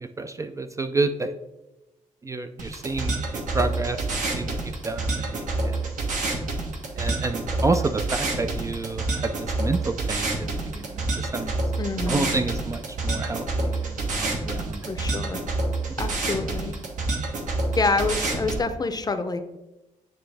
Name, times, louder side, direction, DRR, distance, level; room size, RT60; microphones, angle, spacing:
voice 1, 0.0-1.3 2.2-5.9 6.9-11.5 12.1-14.9, right 3 dB, 25° right, 8 dB, 0.3 m, -29 dB
sound 1, 2.6-18.6, right 2 dB, 70° right, 1.2 m, -28 dB
voice 2, 11.8-12.3 14.9-15.4 16.0-16.7 17.8-19.4, left 3 dB, 30° left, 9 dB, 0.6 m, -27 dB
9.0 x 3.3 x 3.3 m, 0.99 s
cardioid pair, 100°, 13 cm